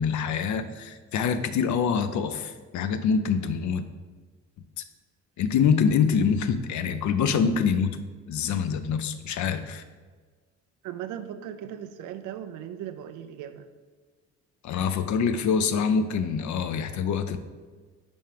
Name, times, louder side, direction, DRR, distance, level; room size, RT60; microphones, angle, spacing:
voice 1, 0.0-3.8 5.4-8.0 8.3-9.8 14.6-17.4, left 6 dB, 70° left, 11 dB, 0.6 m, -25 dB
voice 2, 10.8-13.7, right 10 dB, 90° right, 9 dB, 0.5 m, -38 dB
5.4 x 4.5 x 4.9 m, 1.4 s
cardioid pair, 90°, 30 cm